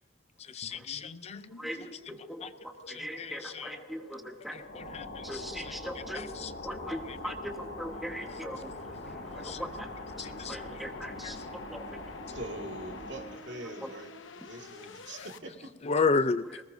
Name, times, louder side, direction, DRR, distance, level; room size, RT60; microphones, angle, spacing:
voice 1, 0.4-1.5 2.4-2.5 2.9-3.8 4.5-5.7 6.1-6.5 6.9-7.2 9.0-9.6 10.2-10.8 11.2-11.5 15.0-15.3 15.8-16.6, left 4 dB, 35° left, 13 dB, 0.4 m, -33 dB
sound 1, 0.6-15.4, left 3 dB, 80° left, 0.9 m, -49 dB
voice 2, 1.6-4.9 5.2-6.3 6.6-12.4 13.8-13.9, equal, ahead, 3 dB, 1.3 m, -41 dB
sound 2, 4.5-13.4, left 1 dB, 60° left, 5.0 m, -43 dB
voice 3, 12.3-14.1 14.4-15.7, right 1 dB, 70° right, 2 dB, 2.1 m, -43 dB
21.5 x 19.0 x 2.7 m, 1.2 s
head